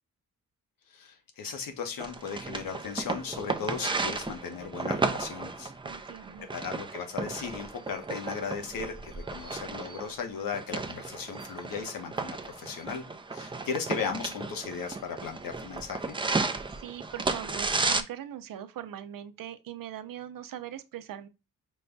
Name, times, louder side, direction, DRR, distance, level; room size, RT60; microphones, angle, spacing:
voice 1, 0.9-5.7 6.5-13.0 13.3-16.2, left 6 dB, 85° left, 1.1 m, -36 dB
sound 1, 2.0-18.0, right 3 dB, 15° right, 0.4 m, -34 dB
voice 2, 5.8-6.5 16.4-21.3, right 11 dB, 80° right, 0.6 m, -41 dB
5.4 x 2.3 x 3.9 m
cardioid pair, 115°, 33 cm